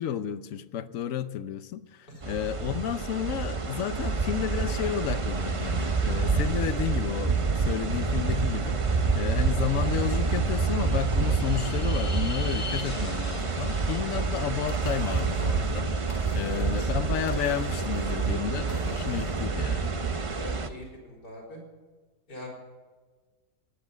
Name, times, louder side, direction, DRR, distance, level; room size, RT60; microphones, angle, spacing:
voice 1, 0.0-19.9, left 10 dB, 65° left, 1.0 m, -32 dB
sound 1, 2.2-20.7, right 4 dB, 40° right, 0.4 m, -28 dB
sound 2, 11.1-14.3 14.7-19.4, left 2 dB, 35° left, 2.2 m, -43 dB
voice 2, 16.5-16.9 20.4-21.6 22.3-22.5, left 1 dB, 85° left, 4.5 m, -43 dB
18.0 x 8.6 x 8.0 m
omnidirectional pair, 1.7 m